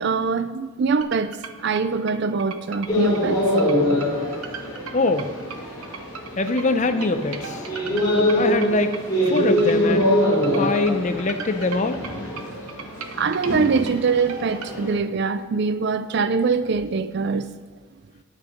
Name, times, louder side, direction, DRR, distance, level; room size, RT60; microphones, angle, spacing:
voice 1, 0.0-3.4 13.1-17.5, right 5 dB, 50° right, 0.4 m, -23 dB
sound 1, 1.0-14.7, right 6 dB, 85° right, 0.8 m, -38 dB
sound 2, 2.9-14.9, equal, 20° left, 3.3 m, -24 dB
voice 2, 4.9-5.3 6.4-7.7 8.3-9.0 9.2-10.2 10.5-12.0, left 3 dB, 35° left, 0.6 m, -23 dB
9.9 x 8.8 x 5.2 m
head